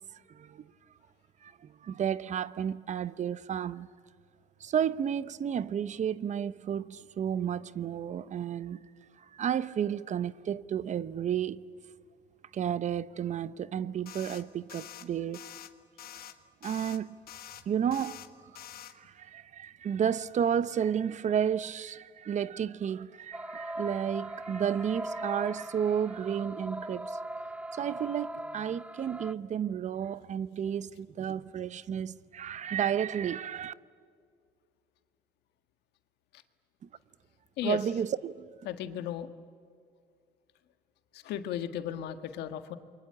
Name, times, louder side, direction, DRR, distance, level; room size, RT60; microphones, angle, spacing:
voice 1, 0.3-0.7 1.4-3.9 4.6-8.8 9.2-11.6 12.5-15.5 16.6-17.2 17.7-18.6 18.9-27.2 27.7-33.7 37.6-38.5, right 8 dB, 45° right, 0.8 m, -32 dB
sound 1, 14.1-14.4 14.7-15.0 15.3-15.7 16.0-16.3 16.6-17.0 17.3-17.6 17.9-18.3 18.6-18.9, left 11 dB, 60° left, 1.5 m, -46 dB
sound 2, 23.3-29.3, right 1 dB, 5° right, 0.8 m, -39 dB
voice 2, 38.6-39.3 41.1-42.8, left 10 dB, 80° left, 1.6 m, -35 dB
28.5 x 23.0 x 8.9 m
cardioid pair, 110°, 17 cm